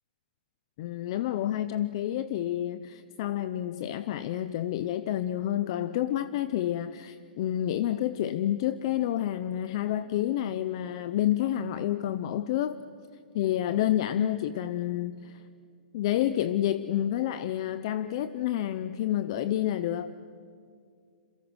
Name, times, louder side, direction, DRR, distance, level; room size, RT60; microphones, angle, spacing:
voice 1, 0.8-12.7 13.3-15.4 15.9-20.2, left 12 dB, 35° left, 13 dB, 0.6 m, -29 dB
29.5 x 27.5 x 6.4 m, 2.2 s
hypercardioid pair, 175°, 5 cm